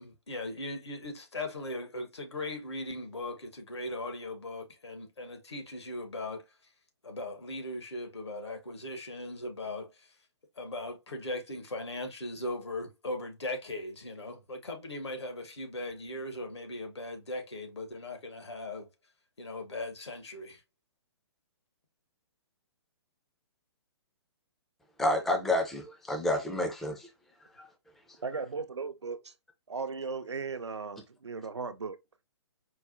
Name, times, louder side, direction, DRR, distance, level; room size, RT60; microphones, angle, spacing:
voice 1, 0.0-6.4 7.0-10.1 10.6-18.9 19.4-20.6, left 1 dB, 70° left, 1.0 m, -39 dB
voice 2, 25.0-27.1 27.6-27.7, left 1 dB, ahead, 0.3 m, -29 dB
voice 3, 28.2-29.3 29.7-32.0, right 4 dB, 75° right, 0.5 m, -37 dB
4.6 x 2.0 x 2.4 m
figure-of-eight pair, 125°, 15 cm